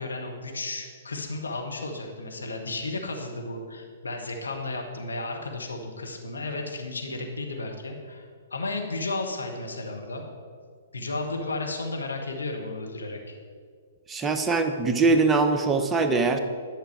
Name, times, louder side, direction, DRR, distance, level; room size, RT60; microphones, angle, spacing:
voice 1, 0.0-8.2 8.5-10.2 10.9-13.2, left 2 dB, 75° left, 2 dB, 1.3 m, -33 dB
voice 2, 14.1-16.4, right 3 dB, 15° right, 6 dB, 0.7 m, -22 dB
11.0 x 6.8 x 4.8 m, 2.1 s
figure-of-eight pair, 115°, 0 cm